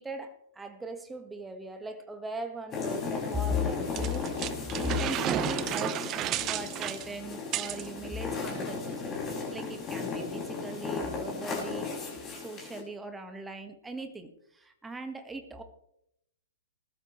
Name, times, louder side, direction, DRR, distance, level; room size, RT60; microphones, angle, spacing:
voice 1, 0.0-4.3 4.7-15.6, left 1 dB, 10° right, 6 dB, 1.6 m, -38 dB
sound 1, 2.7-12.8, left 4 dB, 25° left, 6.5 m, -35 dB
sound 2, 4.0-7.9, right 12 dB, 30° right, 0.7 m, -32 dB
21.0 x 12.5 x 3.3 m, 0.79 s
figure-of-eight pair, 115°, 0 cm